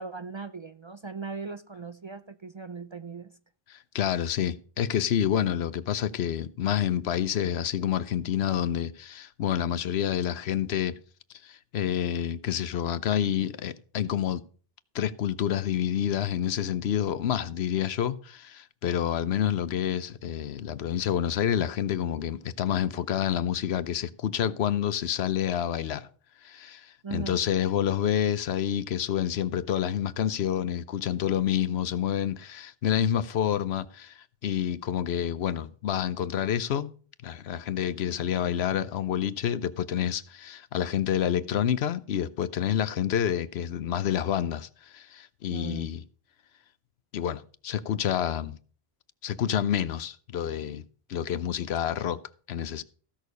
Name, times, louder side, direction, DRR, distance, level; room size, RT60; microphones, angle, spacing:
voice 1, 0.0-3.3 27.0-27.4 45.5-45.9, right 5 dB, 40° right, 0.4 m, -38 dB
voice 2, 3.7-11.0 11.4-14.4 14.9-26.1 26.4-36.9 37.2-46.0 47.1-48.6 49.2-50.8 51.1-52.2 52.5-52.8, left 9 dB, 90° left, 1.0 m, -28 dB
15.5 x 6.4 x 5.3 m
omnidirectional pair, 1.0 m